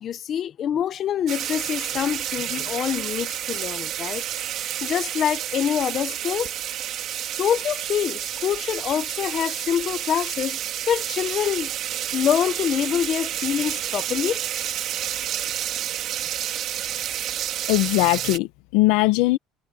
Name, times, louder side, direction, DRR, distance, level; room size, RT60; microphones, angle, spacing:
voice 1, 0.0-4.2 4.6-6.5 7.4-10.6 10.9-11.7 12.1-14.4, left 9 dB, 35° left, 1.0 m, -25 dB
sound 1, 1.3-18.4, right 11 dB, 45° right, 2.9 m, -30 dB
voice 2, 17.7-19.4, left 20 dB, 75° left, 1.2 m, -20 dB
cardioid pair, 155°, 0 cm